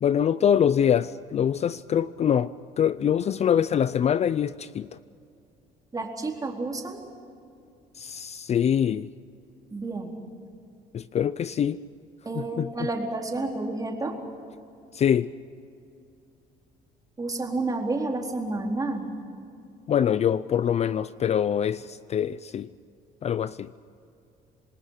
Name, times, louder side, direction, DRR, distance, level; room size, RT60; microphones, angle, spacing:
voice 1, 0.0-5.0 8.0-9.1 10.9-11.8 12.3-12.9 14.9-15.3 19.9-22.7 23.2-23.8, left 8 dB, 40° left, 0.5 m, -24 dB
voice 2, 5.9-7.0 9.7-10.1 12.3-14.2 17.2-19.0, right 2 dB, 20° right, 4.1 m, -30 dB
27.5 x 20.5 x 6.7 m
cardioid pair, 110°, 17 cm